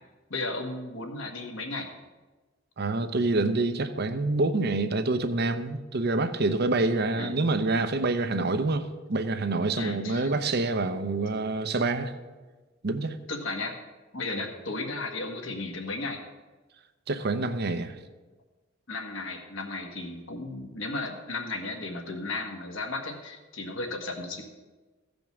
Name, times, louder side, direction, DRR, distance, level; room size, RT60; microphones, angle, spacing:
voice 1, 0.3-1.9 7.2-7.4 9.8-10.3 13.3-13.7 14.1-16.2 18.9-24.4, left 2 dB, 75° left, 1.5 m, -34 dB
voice 2, 2.8-12.1 12.8-13.2 17.1-18.0, right 2 dB, 55° right, 0.7 m, -27 dB
15.0 x 5.3 x 6.0 m
head